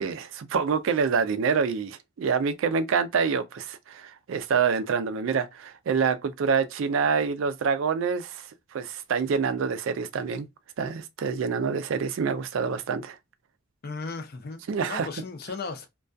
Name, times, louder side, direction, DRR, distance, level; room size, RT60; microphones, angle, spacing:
voice 1, 0.0-8.4 8.7-10.5 10.8-13.2 14.7-15.1, right 6 dB, 75° right, 0.4 m, -26 dB
voice 2, 13.8-14.6 14.9-15.9, left 4 dB, 50° left, 0.5 m, -35 dB
2.3 x 2.2 x 2.5 m
head